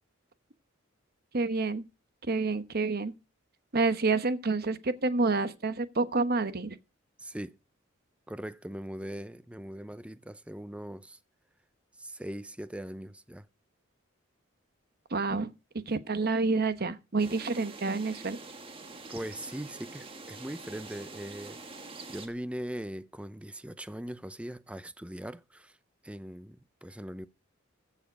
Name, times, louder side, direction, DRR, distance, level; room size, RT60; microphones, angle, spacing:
voice 1, 1.3-1.8 2.3-3.1 3.7-6.8 15.1-15.5 15.9-18.4, right 3 dB, 50° right, 1.1 m, -28 dB
voice 2, 7.2-7.6 8.3-11.2 12.0-13.5 19.1-21.6 22.1-25.8 26.0-27.3, right 1 dB, 5° right, 0.6 m, -40 dB
sound 1, 17.2-22.3, right 3 dB, 25° right, 1.8 m, -45 dB
15.0 x 7.2 x 5.2 m
head